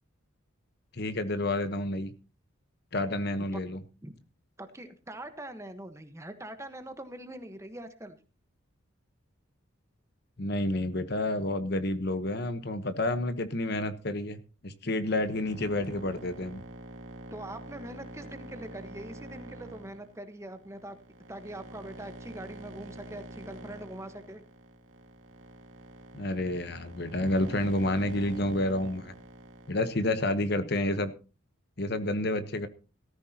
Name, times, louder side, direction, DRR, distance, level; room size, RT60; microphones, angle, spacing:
voice 1, 0.9-2.1 2.9-3.8 10.4-16.6 26.1-29.1 29.7-31.1 31.8-32.7, left 1 dB, 50° left, 11 dB, 1.1 m, -29 dB
voice 2, 4.6-8.2 17.3-21.0 21.3-24.4, right 1 dB, 15° right, 8 dB, 1.2 m, -43 dB
sound 1, 15.0-30.2, right 2 dB, 80° right, 1.9 m, -46 dB
17.5 x 14.0 x 2.9 m, 0.33 s
head